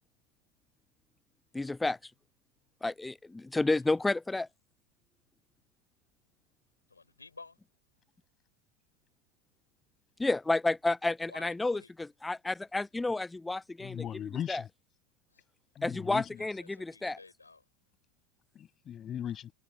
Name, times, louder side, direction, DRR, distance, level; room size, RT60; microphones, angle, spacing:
voice 1, 1.5-2.1 2.8-4.5 10.2-14.0 14.5-14.6 15.8-17.2, left 2 dB, 10° left, 0.4 m, -31 dB
voice 2, 6.9-7.6 11.3-11.9 16.4-17.6, left 4 dB, 90° left, 5.0 m, -52 dB
voice 3, 13.8-14.7 15.7-16.4 18.5-19.5, left 10 dB, 35° left, 7.9 m, -38 dB
figure-of-eight pair, 80°, 0 cm